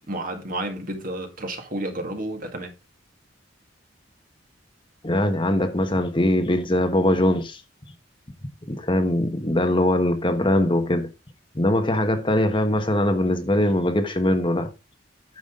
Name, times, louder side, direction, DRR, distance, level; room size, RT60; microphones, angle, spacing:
voice 1, 0.1-2.7, right 1 dB, 45° right, 1.9 m, -31 dB
voice 2, 5.0-7.6 8.7-11.1 11.5-14.7, left 1 dB, 25° left, 1.2 m, -21 dB
9.4 x 7.1 x 3.7 m
head